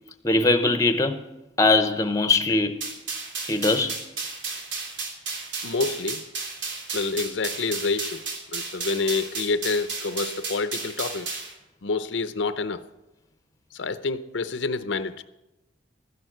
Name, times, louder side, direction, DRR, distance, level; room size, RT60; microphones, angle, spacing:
voice 1, 0.2-1.3 1.6-2.8 3.5-4.0, left 3 dB, 15° left, 0.8 m, -21 dB
sound 1, 2.8-11.5, right 4 dB, 75° right, 3.1 m, -33 dB
voice 2, 5.6-6.2 6.9-8.2 8.5-11.4 11.8-12.8 13.7-15.2, left 3 dB, 75° left, 0.7 m, -28 dB
12.5 x 11.0 x 7.8 m
head